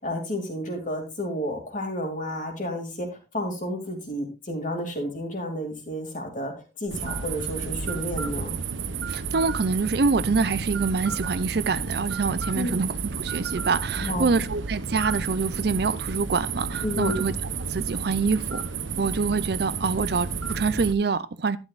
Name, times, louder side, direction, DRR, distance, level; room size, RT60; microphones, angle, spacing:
voice 1, 0.0-6.5 6.8-8.6 12.5-12.7 14.0-14.3 16.8-17.2, equal, 45° left, 2.7 m, -31 dB
sound 1, 6.9-20.9, right 5 dB, 90° right, 0.8 m, -31 dB
voice 2, 9.1-17.3 17.7-18.6 19.0-21.6, right 4 dB, 55° right, 0.5 m, -25 dB
11.5 x 10.0 x 2.5 m
head